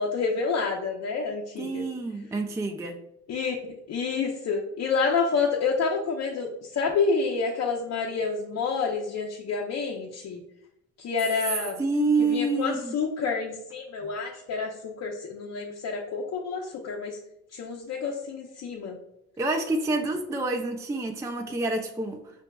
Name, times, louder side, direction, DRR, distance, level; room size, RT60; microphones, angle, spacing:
voice 1, 0.0-1.9 3.3-3.6 3.9-10.4 11.0-11.8 12.2-17.2 17.5-19.0, left 5 dB, 60° left, -1 dB, 0.6 m, -28 dB
voice 2, 1.6-3.0 11.8-13.0 19.4-22.2, right 2 dB, 10° right, 4 dB, 0.3 m, -27 dB
5.9 x 2.8 x 2.2 m, 0.80 s
cardioid pair, 90°, 30 cm